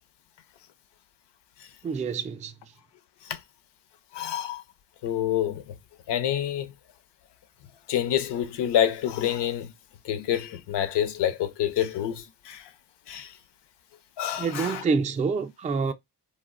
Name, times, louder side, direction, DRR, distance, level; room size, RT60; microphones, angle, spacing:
voice 1, 1.8-2.5 14.4-15.9, right 5 dB, 20° right, 0.3 m, -27 dB
voice 2, 4.1-4.6 5.0-5.8 6.1-6.7 7.9-9.7 10.0-12.6 13.1-13.3 14.2-14.8, left 10 dB, 85° left, 0.6 m, -27 dB
2.4 x 2.1 x 3.6 m
cardioid pair, 105°, 40 cm